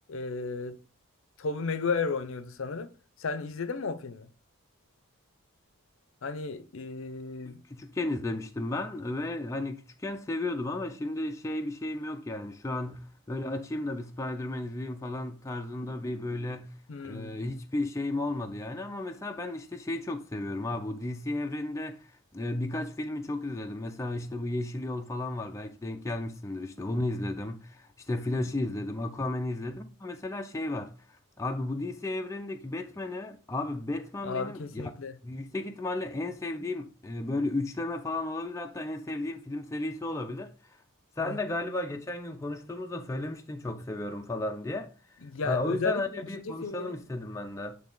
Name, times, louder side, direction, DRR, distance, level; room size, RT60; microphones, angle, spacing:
voice 1, 0.1-0.8 1.4-2.9 3.2-4.3 6.2-7.6 16.9-17.4 34.2-35.2 41.2-41.4 45.2-46.9, left 4 dB, 65° left, 0.6 m, -34 dB
voice 2, 7.7-16.7 17.0-22.0 22.3-30.9 31.4-34.9 35.2-40.5 41.2-44.9 45.4-47.8, left 2 dB, 15° left, 0.4 m, -34 dB
8.8 x 3.3 x 3.8 m
head